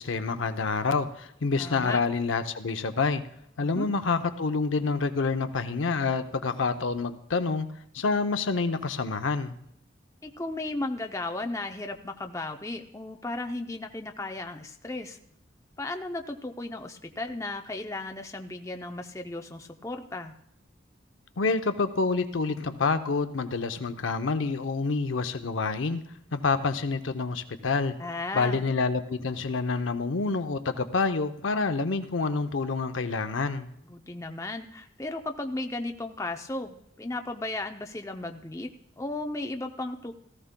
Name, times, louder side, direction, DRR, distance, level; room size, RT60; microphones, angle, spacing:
voice 1, 0.0-3.2 3.6-7.7 7.9-9.6 21.4-26.0 26.3-28.0 28.3-33.7, left 4 dB, 80° left, 9 dB, 0.7 m, -27 dB
voice 2, 1.6-2.0 3.6-3.9 10.2-15.2 15.8-20.3 28.0-28.6 33.9-40.1, left 2 dB, 15° left, 4 dB, 0.5 m, -35 dB
18.0 x 14.0 x 2.2 m, 0.74 s
head